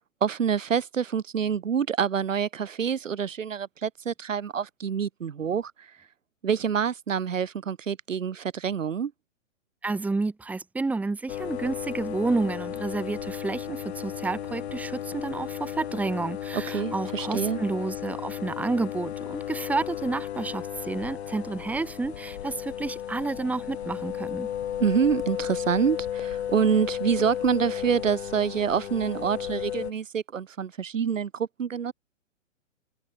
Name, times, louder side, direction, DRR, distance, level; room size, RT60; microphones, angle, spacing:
voice 1, 0.2-5.7 6.4-9.1 16.5-17.6 24.8-31.9, right 7 dB, 80° right, 7.0 m, -27 dB
voice 2, 9.8-24.5, right 3 dB, 5° right, 3.1 m, -30 dB
sound 1, 11.3-29.9, left 10 dB, 55° left, 3.9 m, -34 dB
open air
hypercardioid pair, 165°, 38 cm